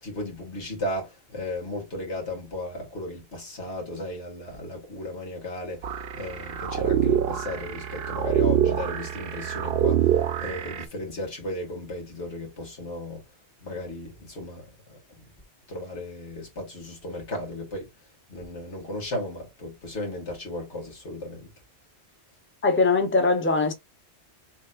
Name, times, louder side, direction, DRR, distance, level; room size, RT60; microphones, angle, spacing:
voice 1, 0.0-13.2 13.6-15.0 15.7-17.9 18.3-21.5, left 1 dB, 90° left, 2.5 m, -35 dB
sound 1, 5.8-10.8, right 9 dB, 65° right, 0.8 m, -25 dB
voice 2, 22.6-23.7, left 3 dB, 10° left, 0.8 m, -21 dB
6.8 x 3.1 x 2.5 m
omnidirectional pair, 1.1 m